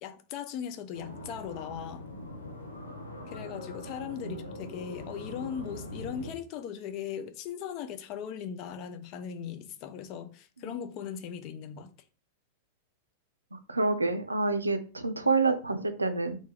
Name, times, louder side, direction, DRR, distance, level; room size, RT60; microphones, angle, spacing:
voice 1, 0.0-2.1 3.3-11.9, left 8 dB, 40° left, 0.4 m, -38 dB
sound 1, 0.9-6.3, left 1 dB, 80° left, 0.8 m, -42 dB
voice 2, 13.5-16.4, right 3 dB, 80° right, 0.4 m, -28 dB
3.2 x 2.6 x 3.4 m
figure-of-eight pair, 90°, 0 cm